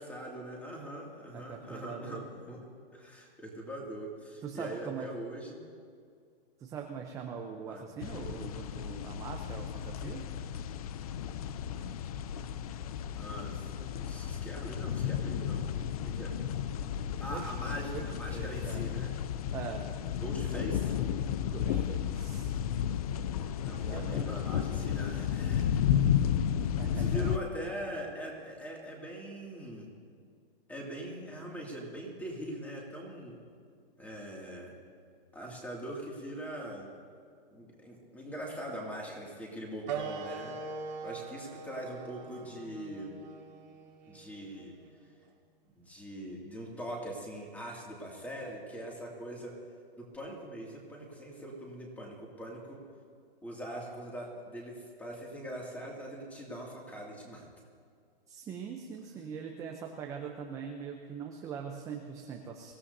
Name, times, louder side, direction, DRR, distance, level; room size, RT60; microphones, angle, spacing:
voice 1, 0.0-2.6 2.9-5.6 7.7-7.8 13.1-13.6 13.9-15.7 16.0-16.4 17.2-19.1 20.1-20.9 23.6-25.7 26.9-29.9 30.7-33.4 34.0-34.7 35.3-36.9 37.5-40.5 41.0-43.1 44.1-44.7 45.8-49.5 50.0-52.8 53.4-57.5, right 1 dB, 5° left, -2 dB, 2.4 m, -42 dB
voice 2, 1.3-2.2 4.4-5.1 6.6-10.2 17.3-17.5 17.9-18.8 19.5-19.8 20.5-20.6 21.5-22.5 23.4-24.4 26.8-27.4 58.3-62.7, right 7 dB, 10° right, 2 dB, 0.7 m, -42 dB
sound 1, 8.0-27.4, left 9 dB, 40° left, 0.5 m, -33 dB
sound 2, 39.9-45.0, right 5 dB, 45° right, 2.1 m, -42 dB
25.0 x 16.0 x 2.7 m, 2.2 s
hypercardioid pair, 150°, 29 cm